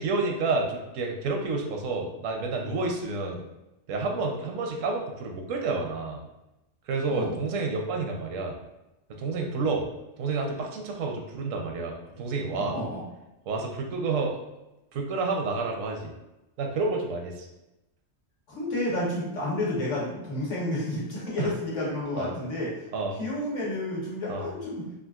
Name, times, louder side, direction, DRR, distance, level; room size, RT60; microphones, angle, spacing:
voice 1, 0.0-3.4 3.9-6.2 6.9-8.6 9.1-9.9 10.2-12.7 13.5-14.4 14.9-16.1 16.6-17.5 21.4-21.5 22.2-22.3 22.9-23.2 24.3-24.5, right 3 dB, 80° right, 1 dB, 1.0 m, -29 dB
voice 2, 12.5-13.0 18.5-22.9 23.1-25.0, left 1 dB, 75° left, -5 dB, 1.3 m, -30 dB
3.7 x 2.4 x 2.3 m, 0.96 s
omnidirectional pair, 1.3 m